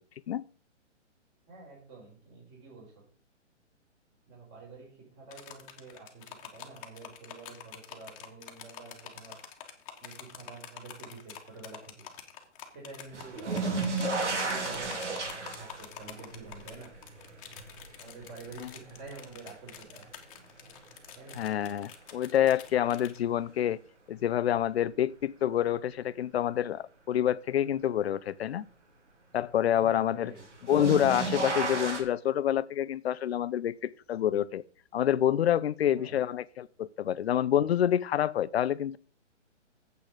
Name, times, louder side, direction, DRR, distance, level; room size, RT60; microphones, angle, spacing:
voice 1, 1.5-3.0 4.3-9.4 10.0-11.9 12.7-13.9 14.4-15.2 15.5-16.9 18.0-20.1 21.2-21.6 29.7-30.4 35.9-36.2, right 4 dB, 25° right, 5.2 m, -48 dB
sound 1, 5.3-23.2, left 9 dB, 30° left, 1.5 m, -47 dB
sound 2, 13.1-20.2 20.6-21.3 22.9-23.0 24.5-24.6 30.4-32.0, right 3 dB, 70° right, 3.1 m, -34 dB
voice 2, 21.4-23.8 24.1-28.7 29.3-30.3 30.6-34.6 34.9-39.0, left 10 dB, 55° left, 0.6 m, -27 dB
8.7 x 8.0 x 5.0 m
hypercardioid pair, 150°, 37 cm